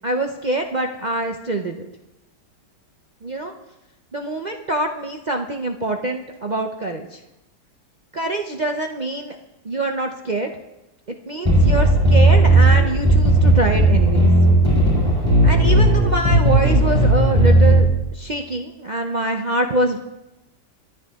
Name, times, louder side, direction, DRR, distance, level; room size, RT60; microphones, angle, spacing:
voice 1, 0.0-1.9 3.2-3.5 4.1-7.2 8.1-9.4 9.6-10.5 11.1-14.3 15.4-20.0, right 1 dB, 50° right, 3 dB, 0.5 m, -25 dB
sound 1, 11.4-17.8, right 1 dB, 15° right, 7.2 m, -15 dB
27.0 x 10.5 x 3.6 m, 0.98 s
omnidirectional pair, 1.8 m